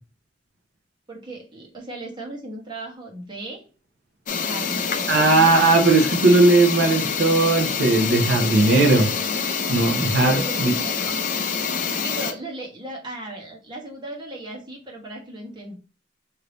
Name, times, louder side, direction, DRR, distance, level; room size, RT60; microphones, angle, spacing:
voice 1, 1.1-3.6 4.4-5.2 10.2-11.0 11.8-15.8, right 2 dB, 25° right, -1 dB, 1.2 m, -36 dB
sound 1, 4.3-12.3, left 6 dB, 45° left, 0.5 m, -26 dB
voice 2, 5.1-9.1 9.7-10.7, right 2 dB, 60° right, 1 dB, 0.8 m, -18 dB
3.3 x 2.8 x 3.9 m, 0.35 s
head